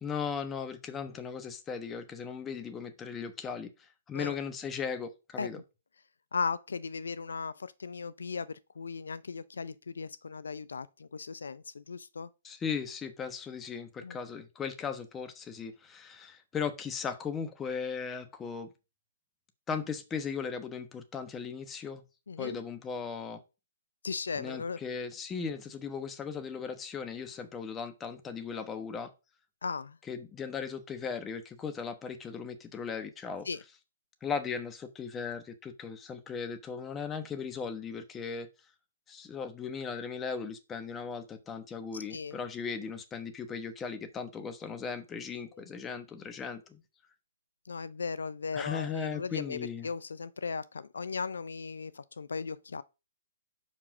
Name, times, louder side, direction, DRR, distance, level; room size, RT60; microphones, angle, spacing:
voice 1, 0.0-3.7 4.1-5.6 12.4-18.7 19.7-22.0 22.4-23.4 24.4-29.1 30.1-33.5 34.2-38.5 39.1-46.8 48.5-49.9, left 6 dB, 15° left, 1.1 m, -37 dB
voice 2, 6.3-12.3 14.0-14.2 22.3-22.6 24.0-24.8 29.6-30.0 33.5-33.6 41.9-42.4 47.7-52.8, left 5 dB, 80° left, 0.4 m, -37 dB
5.4 x 5.0 x 6.4 m
hypercardioid pair, 135°, 0 cm